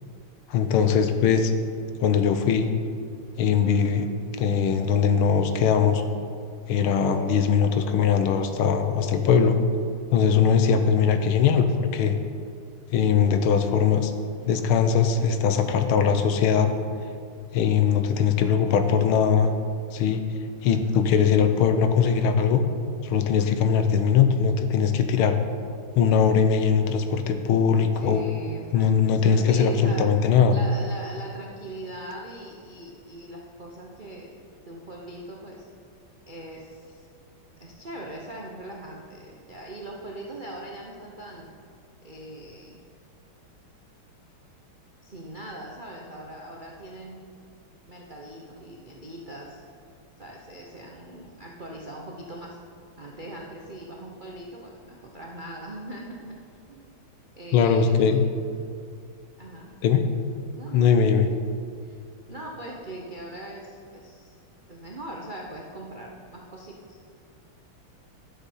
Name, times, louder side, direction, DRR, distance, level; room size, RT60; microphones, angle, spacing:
voice 1, 0.5-1.5 2.0-2.7 3.4-4.1 4.4-6.0 6.7-9.6 10.1-12.2 12.9-14.1 14.5-16.7 17.5-19.5 19.9-20.2 20.6-22.6 23.0-25.4 26.0-28.2 28.7-30.6 57.5-58.3 59.8-60.0 60.7-61.3, left 7 dB, 80° left, 8 dB, 1.6 m, -21 dB
voice 2, 28.0-30.1 30.5-34.4 34.7-35.7 36.3-37.1 37.6-41.5 42.0-42.8 45.0-47.2 47.9-49.6 50.2-52.6 53.0-56.4 56.7-56.9 57.4-58.1 59.4-59.7 60.6-61.0 61.8-62.0 62.3-64.4 64.7-67.0, right 1 dB, 60° right, -2 dB, 0.5 m, -40 dB
11.0 x 7.4 x 5.5 m, 2.3 s
omnidirectional pair, 2.4 m